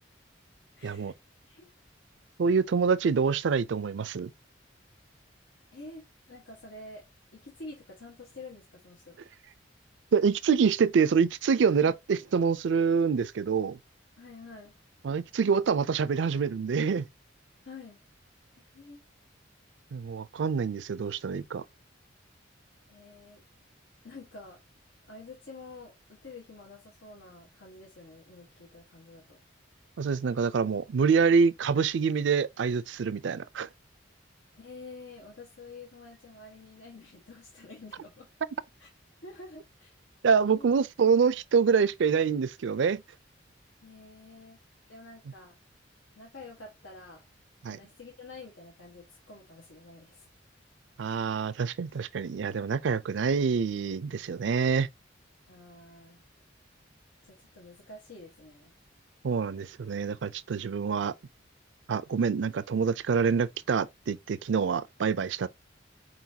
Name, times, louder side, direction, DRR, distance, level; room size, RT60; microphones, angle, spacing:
voice 1, 0.8-1.2 1.4-1.7 5.7-7.1 7.3-9.2 11.8-12.0 14.2-14.7 17.6-18.0 18.5-19.0 22.9-23.4 24.0-24.6 25.1-29.4 34.5-38.3 38.8-38.9 39.2-39.9 40.5-40.7 43.8-44.6 44.9-45.6 46.1-47.2 47.6-50.3 55.5-56.2 57.2-58.7, left 3 dB, 90° left, 1.3 m, -48 dB
voice 2, 2.4-4.3 10.1-13.8 15.0-17.1 19.9-21.6 30.0-33.7 40.2-43.0 47.6-47.8 51.0-54.9 59.2-61.1 61.9-65.5, right 5 dB, 70° right, 0.4 m, -26 dB
4.6 x 4.0 x 2.7 m
head